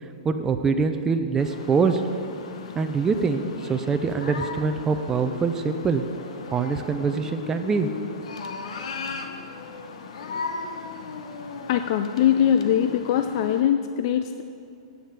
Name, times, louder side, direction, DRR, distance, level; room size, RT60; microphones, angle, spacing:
voice 1, 0.2-2.0 2.8-6.0 6.5-7.9, right 5 dB, 15° right, 7 dB, 0.5 m, -24 dB
sound 1, 1.4-13.6, left 4 dB, 75° left, 1.0 m, -37 dB
voice 2, 11.7-14.4, left 9 dB, 50° left, 8 dB, 0.4 m, -22 dB
8.5 x 7.3 x 7.2 m, 2.5 s
hypercardioid pair, 145°, 3 cm